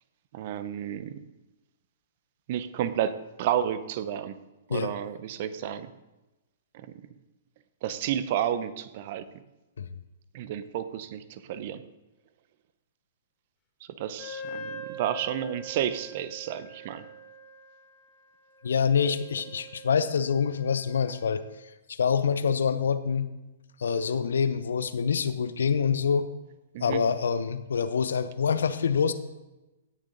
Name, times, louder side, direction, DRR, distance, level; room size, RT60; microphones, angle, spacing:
voice 1, 0.3-1.2 2.5-4.4 4.7-5.9 6.7-6.9 7.8-9.3 10.3-11.8 14.0-17.1 26.7-27.0, right 10 dB, 50° right, 14 dB, 0.7 m, -31 dB
Wind instrument woodwind instrument, 14.2-21.5, right 1 dB, 25° left, 2.5 m, -44 dB
voice 2, 18.6-21.4 21.9-23.3 23.8-26.3 26.8-29.1, left 6 dB, 70° left, 12 dB, 0.7 m, -26 dB
16.5 x 6.4 x 3.9 m, 1.1 s
figure-of-eight pair, 115°, 0 cm